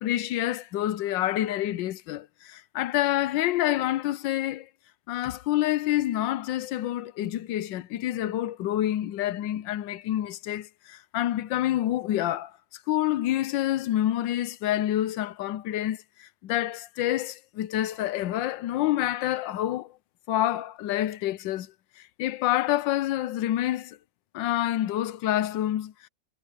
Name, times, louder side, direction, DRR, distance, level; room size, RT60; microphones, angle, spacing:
voice 1, 0.0-4.7 5.1-12.5 12.9-19.9 20.3-21.7 22.0-24.0 24.3-26.1, left 13 dB, 90° left, 1.4 m, -27 dB
omnidirectional pair, 1.9 m